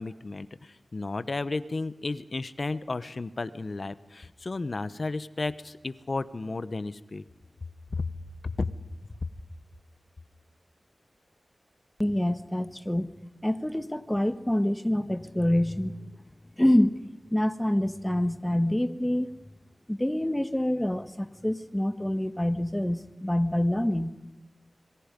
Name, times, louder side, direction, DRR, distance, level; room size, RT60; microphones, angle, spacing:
voice 1, 0.0-7.2 7.9-8.1 8.4-8.7, left 3 dB, 55° left, 14 dB, 1.0 m, -33 dB
voice 2, 12.0-13.1 13.4-16.0 16.6-17.0 17.3-19.3 19.9-24.1, left 1 dB, 10° left, 11 dB, 1.4 m, -26 dB
26.5 x 23.0 x 5.3 m, 1.1 s
wide cardioid pair, 60°, 0 cm